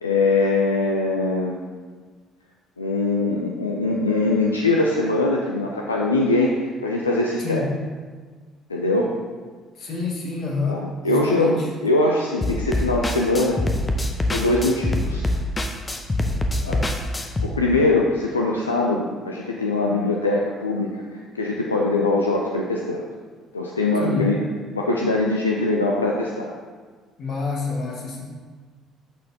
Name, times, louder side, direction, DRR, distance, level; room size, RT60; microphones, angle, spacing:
voice 1, 0.0-1.6 2.8-7.6 8.7-9.1 10.7-13.6 14.3-15.3 16.6-16.8 17.4-21.0 21.3-23.1 23.5-24.4 24.7-26.5, left 2 dB, 90° left, -1 dB, 0.4 m, -22 dB
voice 2, 7.4-7.7 9.7-11.7 16.6-17.0 24.0-24.3 27.2-28.2, left 3 dB, 50° left, -1 dB, 1.5 m, -28 dB
sound 1, 12.4-17.5, left 1 dB, 25° left, 0.7 m, -24 dB
12.0 x 4.3 x 2.8 m, 1.5 s
figure-of-eight pair, 50°, 0 cm